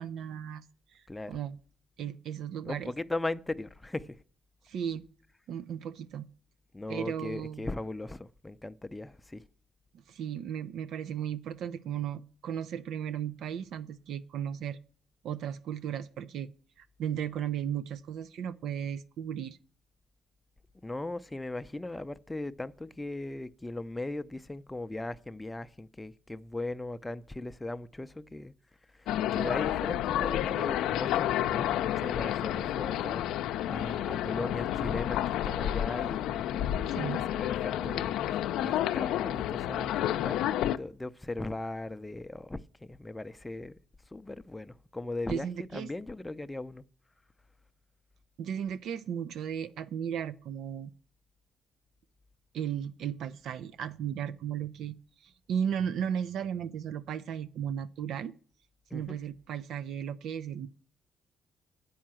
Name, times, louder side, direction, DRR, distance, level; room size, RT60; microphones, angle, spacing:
voice 1, 0.0-1.6 2.0-2.9 4.6-5.0 5.5-6.3 6.9-7.7 9.9-14.8 15.2-16.5 16.8-19.6 36.9-37.2 45.3-45.9 48.4-50.9 52.5-58.3 58.9-60.7, right 9 dB, 75° right, 0.4 m, -35 dB
voice 2, 2.6-4.2 6.7-9.4 20.8-28.5 28.9-33.2 33.7-40.0 40.2-43.7 44.1-45.5 45.7-46.8 58.9-59.2, left 2 dB, 15° left, 0.5 m, -38 dB
sound 1, 29.1-40.8, left 12 dB, 90° left, 0.5 m, -30 dB
8.6 x 5.7 x 7.5 m
cardioid pair, 90°, 0 cm